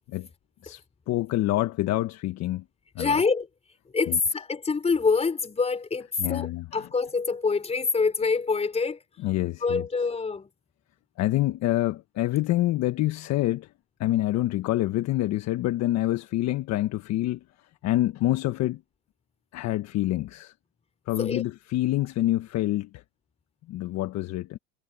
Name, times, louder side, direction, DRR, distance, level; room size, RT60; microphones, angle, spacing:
voice 1, 0.6-2.6 2.9-3.1 4.1-4.2 6.2-6.8 9.2-9.8 11.2-13.7 14.0-17.4 17.8-18.8 19.5-20.5 21.1-23.0 23.7-24.6, left 15 dB, 45° left, 1.4 m, -26 dB
voice 2, 3.0-3.5 3.9-9.0 9.6-10.5 21.2-21.4, left 4 dB, 15° left, 4.6 m, -26 dB
supercardioid pair, 110°, 38 cm